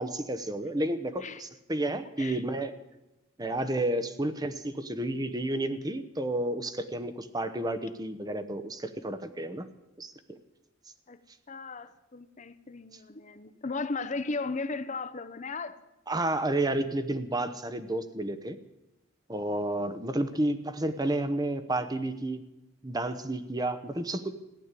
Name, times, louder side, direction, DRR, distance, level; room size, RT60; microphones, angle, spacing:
voice 1, 0.0-2.7 3.4-9.7 10.0-10.4 16.1-18.6 19.3-22.4 22.8-24.3, right 1 dB, 20° right, 0.9 m, -31 dB
voice 2, 11.5-15.8, left 3 dB, 35° left, 0.8 m, -36 dB
15.5 x 11.0 x 8.3 m
head